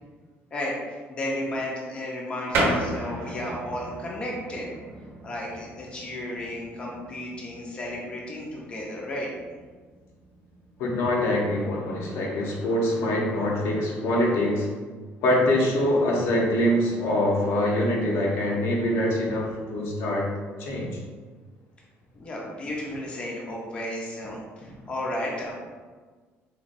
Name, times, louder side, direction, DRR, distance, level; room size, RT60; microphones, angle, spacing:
voice 1, 0.5-4.7 5.2-9.3 22.2-25.5, left 1 dB, 25° left, -3 dB, 0.5 m, -33 dB
sound 1, 2.5-12.7, right 1 dB, 55° right, 0.7 m, -35 dB
voice 2, 10.8-14.7 15.2-20.3 20.6-21.0, left 1 dB, 75° left, -2 dB, 0.7 m, -24 dB
4.0 x 2.2 x 2.5 m, 1.4 s
cardioid pair, 175°, 5 cm